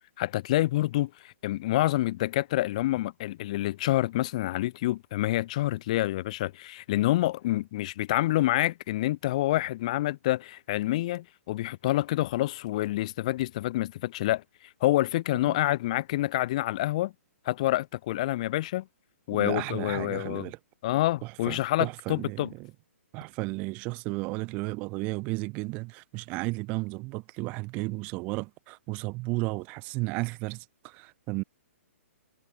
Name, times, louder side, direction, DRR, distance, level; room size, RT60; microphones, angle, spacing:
voice 1, 0.2-14.4 14.8-17.1 17.5-18.9 19.3-20.5 20.8-22.5, left 16 dB, 25° left, 1.8 m, -27 dB
voice 2, 19.3-20.6 21.2-22.7 23.1-31.4, right 25 dB, 15° right, 4.2 m, -34 dB
hypercardioid pair, 180°, 8 cm